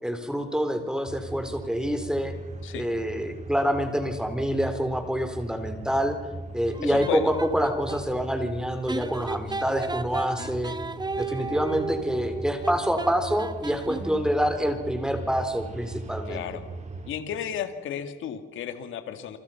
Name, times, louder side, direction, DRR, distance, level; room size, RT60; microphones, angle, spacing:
voice 1, 0.0-2.3 2.7-6.2 6.5-10.7 11.2-16.4, equal, 5° right, 7 dB, 4.2 m, -27 dB
sound 1, 1.1-17.1, right 2 dB, 35° right, 4.5 m, -40 dB
sound 2, 6.7-8.1 8.9-14.3, right 4 dB, 20° right, 1.3 m, -34 dB
voice 2, 6.8-7.3 10.3-10.5 16.3-16.7 17.1-19.4, left 9 dB, 80° left, 8 dB, 2.3 m, -33 dB
29.0 x 25.0 x 5.9 m, 1.2 s
cardioid pair, 90°, 20 cm